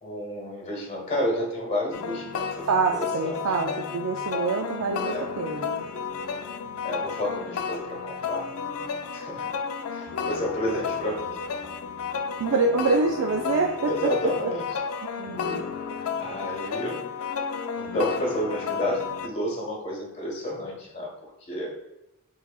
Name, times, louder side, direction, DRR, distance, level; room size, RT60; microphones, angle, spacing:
voice 1, 0.0-2.7 3.0-3.4 5.0-5.3 6.8-8.5 9.1-9.6 9.9-11.3 12.4-12.5 13.8-14.6 16.2-17.0 17.8-21.7, left 1 dB, 30° left, -1 dB, 1.4 m, -30 dB
sound 1, 1.9-19.3, left 6 dB, 85° left, 0.4 m, -32 dB
voice 2, 2.6-5.9 12.4-14.1 15.2-15.6, right 4 dB, 70° right, 2 dB, 0.4 m, -26 dB
4.6 x 4.0 x 2.4 m, 0.91 s
head